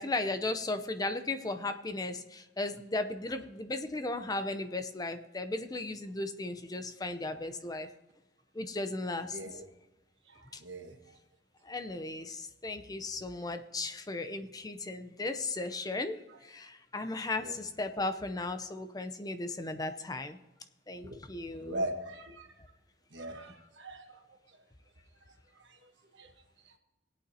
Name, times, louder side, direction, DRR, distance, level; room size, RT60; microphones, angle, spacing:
voice 1, 0.0-7.9 8.5-9.6 10.5-10.6 11.6-20.4 20.9-21.9, left 2 dB, 20° left, 9 dB, 0.6 m, -36 dB
voice 2, 9.3-9.6 10.3-10.9 17.4-17.5 21.0-21.2 21.6-22.5 23.1-24.2 25.7-25.8 26.2-26.3, right 1 dB, 70° right, 4 dB, 1.5 m, -39 dB
19.0 x 8.6 x 2.8 m, 1.0 s
head